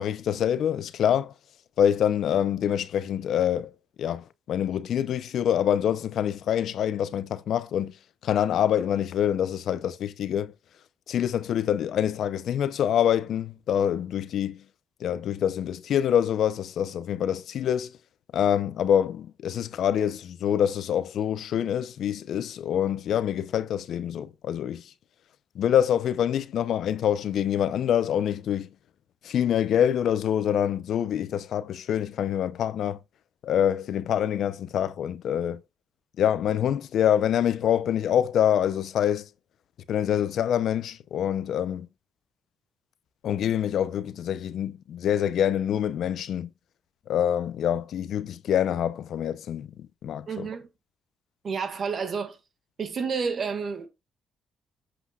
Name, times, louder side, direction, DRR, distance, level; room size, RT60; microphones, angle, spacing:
voice 1, 0.0-1.3 1.8-3.7 4.0-7.9 8.2-10.5 11.1-14.6 15.0-17.9 18.3-24.8 25.6-28.7 29.2-33.0 33.4-35.6 36.2-39.2 39.9-41.9 43.2-46.5 47.1-50.3, left 9 dB, 70° left, 0.6 m, -25 dB
voice 2, 50.3-50.7 51.4-52.4 52.8-53.9, right 5 dB, 50° right, 1.9 m, -30 dB
8.3 x 7.9 x 2.4 m
cardioid pair, 90°, 0 cm